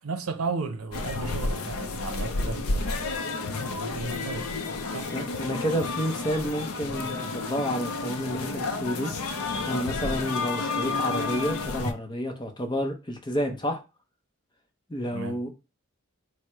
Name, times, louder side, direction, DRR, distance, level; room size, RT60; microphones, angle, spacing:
voice 1, 0.0-3.3 3.7-4.5 4.9-5.1 10.0-10.2 15.1-15.4, right 4 dB, 80° right, 0.6 m, -34 dB
sound 1, 0.9-11.9, left 3 dB, 85° left, 0.6 m, -31 dB
voice 2, 5.1-9.1 9.7-13.8 14.9-15.5, equal, 20° left, 0.6 m, -30 dB
4.6 x 2.1 x 4.5 m
head